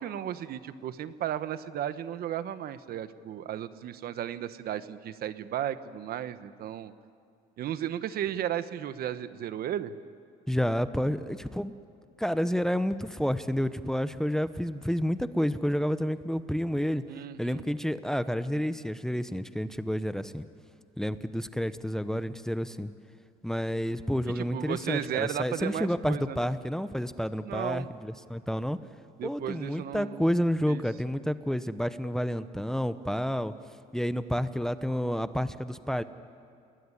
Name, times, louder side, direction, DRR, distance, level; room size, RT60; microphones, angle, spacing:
voice 1, 0.0-6.9 7.6-9.9 17.1-17.6 24.4-26.5 27.4-27.9 29.2-30.2 30.7-30.8, right 10 dB, 65° right, 13 dB, 1.1 m, -34 dB
voice 2, 10.5-11.7 12.2-17.0 17.4-20.5 21.0-22.9 23.4-28.8 29.2-33.5 33.9-36.0, equal, 5° left, 12 dB, 0.9 m, -30 dB
30.0 x 20.0 x 9.9 m, 2.4 s
cardioid pair, 110°, 17 cm